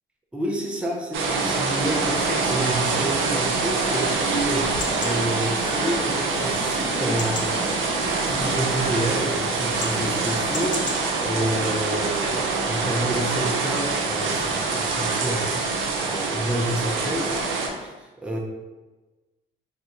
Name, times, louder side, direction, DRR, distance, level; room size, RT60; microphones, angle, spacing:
voice 1, 0.3-7.5 8.2-10.8 11.2-15.6 16.0-17.4 17.7-18.4, right 1 dB, 5° right, -1 dB, 0.6 m, -29 dB
sound 1, 1.1-17.7, right 4 dB, 75° right, 0.6 m, -25 dB
Chatter / Livestock farm animals working animals / Chirp tweet, 3.8-11.0, left 3 dB, 40° left, 0.5 m, -35 dB
3.0 x 2.3 x 3.9 m, 1.2 s
cardioid pair, 90°, 20 cm